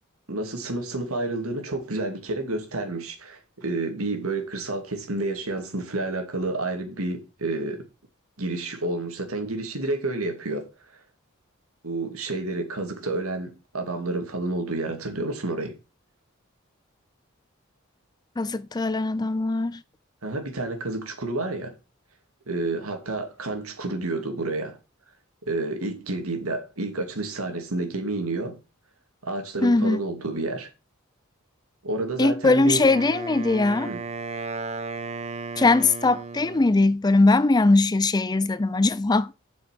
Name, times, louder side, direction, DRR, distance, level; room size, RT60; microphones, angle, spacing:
voice 1, 0.3-7.8 8.4-10.7 11.8-15.8 20.2-21.8 22.5-24.8 25.5-28.6 29.2-30.7 31.8-32.8 33.8-34.0, right 2 dB, 85° right, 2.5 m, -30 dB
voice 2, 18.4-19.8 29.6-30.0 32.2-33.9 35.6-39.3, left 3 dB, 20° left, 0.4 m, -20 dB
Wind instrument woodwind instrument, 32.6-36.8, right 4 dB, 30° right, 1.0 m, -35 dB
7.9 x 6.1 x 6.0 m
head